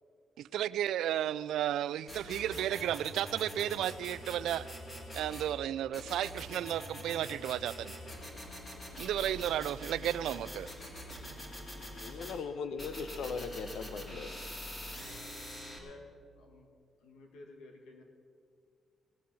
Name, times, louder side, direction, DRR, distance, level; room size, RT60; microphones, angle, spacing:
voice 1, 0.4-4.7 5.1-7.9 9.0-10.7, right 11 dB, 90° right, 18 dB, 0.3 m, -33 dB
sound 1, 2.1-5.5 5.9-12.4 12.8-15.8, equal, 25° left, 2.5 m, -45 dB
voice 2, 11.9-14.3, left 5 dB, 70° left, 10 dB, 0.8 m, -39 dB
voice 3, 15.6-16.1 16.4-16.7 17.0-18.0, left 2 dB, 85° left, 2 dB, 2.1 m, -53 dB
18.0 x 7.7 x 7.0 m, 2.2 s
cardioid pair, 150°, 0 cm